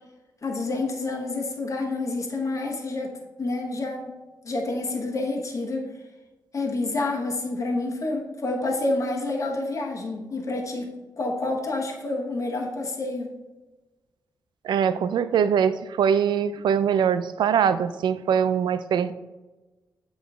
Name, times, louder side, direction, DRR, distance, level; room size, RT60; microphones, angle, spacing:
voice 1, 0.4-3.1 3.4-4.1 4.4-5.9 6.5-10.9 11.2-13.3, left 2 dB, 45° left, 1 dB, 1.1 m, -28 dB
voice 2, 14.6-19.1, right 8 dB, 90° right, 13 dB, 0.4 m, -22 dB
8.1 x 3.1 x 4.8 m, 1.1 s
wide cardioid pair, 120°, 8 cm